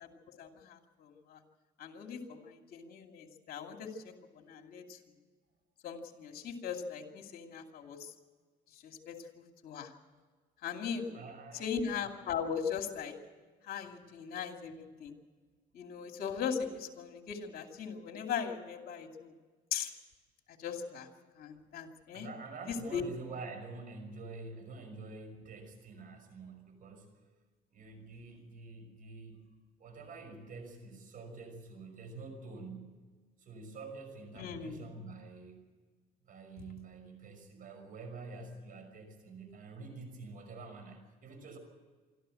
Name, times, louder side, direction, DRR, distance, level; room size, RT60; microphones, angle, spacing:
voice 1, 0.0-1.4 1.8-5.0 5.8-8.1 8.7-9.9 10.6-11.2 11.6-13.1 13.7-15.1 15.7-19.3 19.7-19.9 20.6-21.1 21.4-22.3 22.7-23.0 34.4-34.8, left 7 dB, 60° left, 4 dB, 2.6 m, -39 dB
voice 2, 11.1-11.7 22.1-27.1 27.7-29.4 29.8-33.0 33.4-35.6 36.2-41.6, right 3 dB, 55° right, 7 dB, 5.7 m, -47 dB
24.5 x 13.5 x 7.8 m, 1.5 s
cardioid pair, 110°, 17 cm